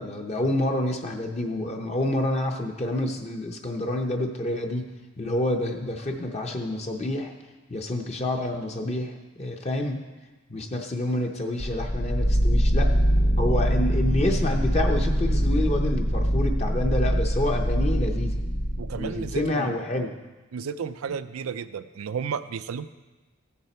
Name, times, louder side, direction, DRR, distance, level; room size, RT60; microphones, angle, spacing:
voice 1, 0.0-4.9 5.2-7.3 7.7-10.0 10.5-12.9 13.4-18.5 18.9-20.1, left 1 dB, 30° left, 2 dB, 0.7 m, -28 dB
sound 1, 11.6-19.4, equal, 90° left, 2.2 m, -23 dB
voice 2, 18.8-19.7 20.5-22.9, right 6 dB, 85° right, 13 dB, 0.5 m, -33 dB
15.0 x 6.9 x 4.3 m, 1.2 s
head